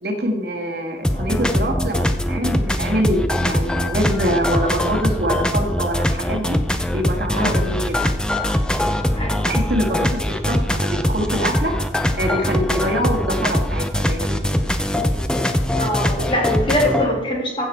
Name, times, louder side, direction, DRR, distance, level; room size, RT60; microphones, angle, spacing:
voice 1, 0.0-6.6 6.9-8.0 9.5-11.7 12.2-14.6, equal, 65° right, 2 dB, 1.8 m, -24 dB
sound 1, 1.0-17.1, left 1 dB, 5° left, 0.6 m, -21 dB
voice 2, 15.8-17.6, left 1 dB, 30° left, -2 dB, 2.9 m, -22 dB
15.5 x 5.9 x 4.5 m, 1.0 s
head